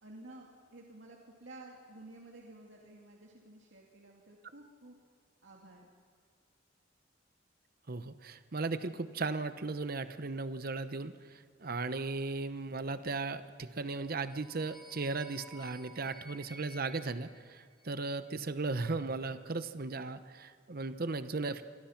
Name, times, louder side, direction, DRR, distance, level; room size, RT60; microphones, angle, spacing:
voice 1, 0.0-5.0 5.4-5.9, right 2 dB, 70° right, -2 dB, 2.6 m, -52 dB
voice 2, 7.9-21.6, right 3 dB, 50° right, 11 dB, 0.9 m, -36 dB
sound 1, 13.9-18.2, right 1 dB, ahead, 5.9 m, -55 dB
29.0 x 23.5 x 5.9 m, 2.1 s
head